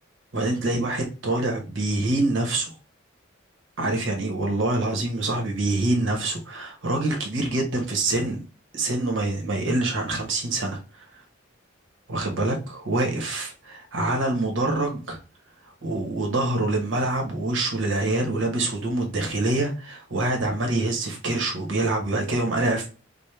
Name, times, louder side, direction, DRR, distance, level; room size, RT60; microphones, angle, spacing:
voice 1, 0.3-2.7 3.8-8.4 8.7-11.1 12.1-15.2 15.8-22.9, right 2 dB, 70° right, 1 dB, 1.3 m, -25 dB
5.1 x 2.2 x 3.3 m, 0.33 s
head